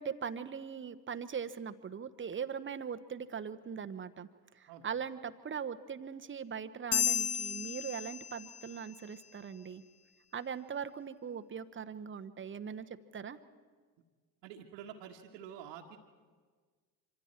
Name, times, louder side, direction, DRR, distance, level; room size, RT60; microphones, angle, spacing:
voice 1, 0.0-4.3 4.6-9.8 10.3-13.4, right 7 dB, 25° right, 11 dB, 1.0 m, -40 dB
sound 1, 6.9-8.8, left 9 dB, 30° left, 0.8 m, -33 dB
voice 2, 14.4-16.0, right 9 dB, 70° right, -2 dB, 1.6 m, -48 dB
26.0 x 25.0 x 4.4 m, 1.5 s
hypercardioid pair, 60°, 50 cm